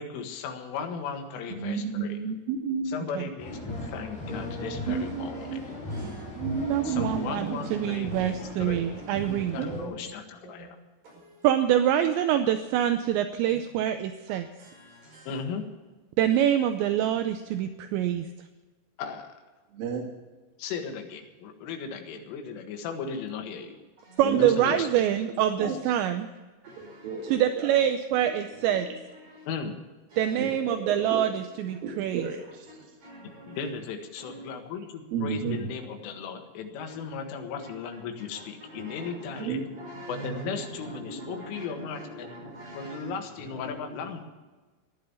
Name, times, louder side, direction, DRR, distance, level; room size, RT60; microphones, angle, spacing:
voice 1, 0.0-2.2 2.9-5.6 6.8-8.3 8.6-8.8 9.5-10.8 15.3-15.7 19.0-19.3 20.6-23.8 24.4-24.9 25.6-25.7 29.5-29.8 33.5-34.8 35.2-39.6 40.1-42.0 42.8-44.2, left 6 dB, 75° left, 5 dB, 4.1 m, -36 dB
voice 2, 1.5-3.0 3.6-3.8 4.9-5.6 6.0-7.9 9.6-10.1 10.4-10.7 19.7-20.0 24.2-24.5 25.6-25.8 26.7-27.7 30.4-30.5 30.9-31.2 31.8-32.7 35.1-35.7 39.4-39.6, right 5 dB, 60° right, 1 dB, 2.7 m, -33 dB
sound 1, 3.4-9.8, left 1 dB, 25° left, 6.0 m, -37 dB
voice 3, 5.9-6.2 11.0-11.5 13.5-13.6 14.3-15.3 24.0-24.2 26.6-27.4 28.2-28.3 28.6-28.9 29.2-29.5 30.1-30.5 32.7-33.7 34.2-34.4 36.9-37.0 37.5-37.7 38.3-40.6 41.1-41.6 42.1-43.2 43.4-43.8, right 2 dB, 35° right, -1 dB, 6.5 m, -44 dB
voice 4, 6.7-9.6 11.4-14.5 16.2-18.3 24.2-26.3 27.2-28.9 30.2-32.3, right 10 dB, 85° right, 8 dB, 2.6 m, -25 dB
15.5 x 11.0 x 7.0 m, 1.3 s
omnidirectional pair, 5.9 m